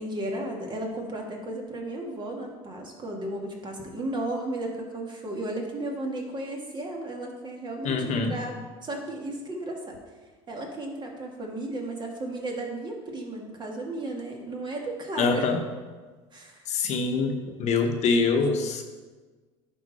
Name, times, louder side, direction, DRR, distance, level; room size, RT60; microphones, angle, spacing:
voice 1, 0.0-8.6 8.8-10.0 10.5-15.5 16.3-16.7, right 1 dB, 30° right, 1 dB, 2.0 m, -34 dB
voice 2, 7.8-8.4 15.2-15.6 16.7-18.9, left 4 dB, 55° left, 5 dB, 1.0 m, -25 dB
11.0 x 4.3 x 4.2 m, 1.4 s
supercardioid pair, 85°, 14 cm